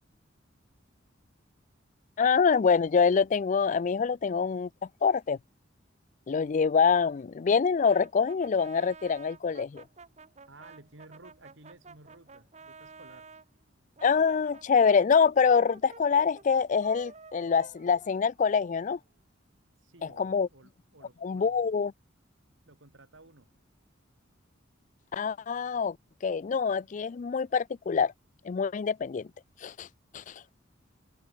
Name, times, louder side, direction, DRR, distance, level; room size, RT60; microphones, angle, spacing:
voice 1, 2.2-4.7 5.0-5.4 6.3-9.8 14.0-19.0 20.2-20.5 21.2-21.9 25.1-26.0 26.2-28.1 28.4-29.3 29.6-29.9 30.1-30.3, left 6 dB, 40° left, 0.3 m, -25 dB
Brass instrument, 7.8-13.4 14.0-18.7, right 4 dB, 35° right, 1.4 m, -51 dB
voice 2, 10.5-13.3 19.8-21.8 22.7-23.5, right 2 dB, 75° right, 2.7 m, -54 dB
head